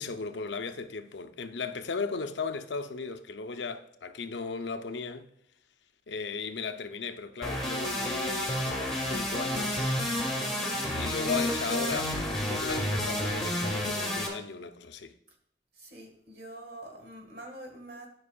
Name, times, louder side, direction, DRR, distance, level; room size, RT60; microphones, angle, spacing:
voice 1, 0.0-5.3 6.1-9.9 10.9-15.1, left 4 dB, 85° left, 0.6 m, -36 dB
sound 1, 7.4-14.3, left 1 dB, ahead, 1.3 m, -30 dB
voice 2, 10.2-10.5 15.8-18.1, right 1 dB, 60° right, 1.7 m, -46 dB
11.0 x 5.5 x 2.3 m
head